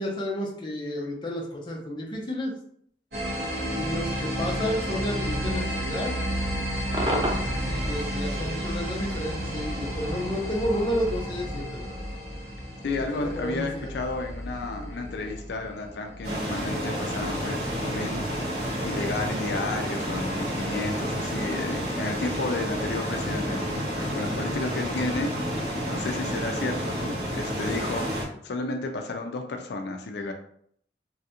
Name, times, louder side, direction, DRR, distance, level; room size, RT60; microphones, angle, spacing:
voice 1, 0.0-2.5 3.8-6.2 6.9-7.3 7.6-12.1 13.0-13.9, equal, 25° left, -1 dB, 0.5 m, -31 dB
sound 1, 3.1-18.6, equal, 65° right, 1.4 m, -32 dB
Cheering / Crowd / Fireworks, 6.9-12.2, right 1 dB, 25° right, 0.4 m, -35 dB
voice 2, 12.8-18.2 18.5-25.3 25.6-30.3, left 3 dB, 75° left, 4 dB, 0.4 m, -32 dB
sound 2, 16.2-28.2, equal, 90° right, 1.4 m, -30 dB
3.1 x 2.4 x 2.8 m, 0.65 s
head